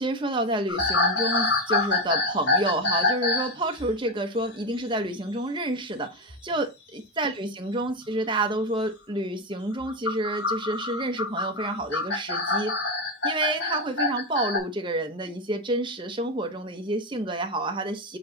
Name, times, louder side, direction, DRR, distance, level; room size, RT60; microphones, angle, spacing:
voice 1, 0.0-12.7 13.2-18.2, right 1 dB, 25° right, 1.0 m, -29 dB
sound 1, 0.7-3.5 3.8-4.1 6.3-6.5 7.8-7.9 9.8-14.6, left 2 dB, 85° left, 3.1 m, -26 dB
7.8 x 4.0 x 4.0 m
head